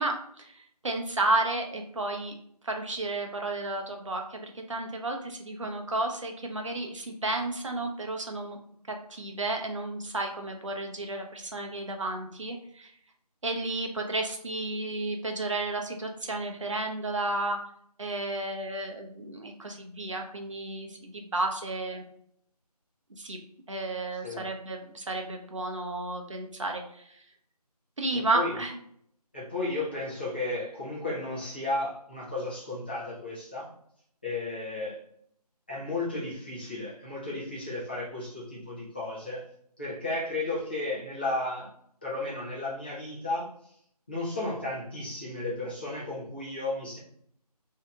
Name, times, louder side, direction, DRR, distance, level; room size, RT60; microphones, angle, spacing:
voice 1, 0.0-2.3 2.6-8.6 8.9-12.9 13.4-17.6 18.0-22.0 23.1-23.4 23.7-27.2 28.0-28.8, right 2 dB, 50° right, 3 dB, 0.7 m, -32 dB
voice 2, 29.3-33.7 34.2-35.0 35.7-39.4 39.8-41.7 42.0-43.7 44.1-47.0, left 2 dB, 15° left, -8 dB, 0.6 m, -33 dB
3.2 x 2.8 x 3.4 m, 0.68 s
figure-of-eight pair, 165°, 20 cm